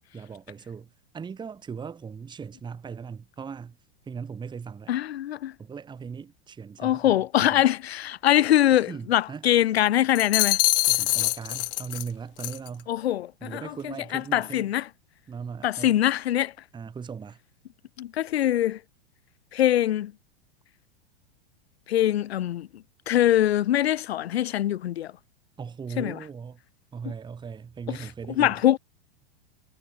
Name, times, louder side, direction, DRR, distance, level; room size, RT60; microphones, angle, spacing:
voice 1, 0.1-3.7 4.1-4.9 5.6-7.6 8.9-9.5 10.9-12.9 13.4-14.7 15.3-15.9 16.7-17.4 25.6-26.6 26.9-28.6, right 6 dB, 15° right, 1.1 m, -38 dB
voice 2, 4.9-5.5 6.8-10.6 12.9-14.9 15.6-16.5 18.0-18.8 19.5-20.1 21.9-22.7 23.1-25.1 26.0-26.2 27.9-28.0 28.4-28.8, left 12 dB, 85° left, 0.8 m, -23 dB
sound 1, 10.2-12.1 12.4-12.7, left 20 dB, 65° left, 0.4 m, -24 dB
hypercardioid pair, 110°, 31 cm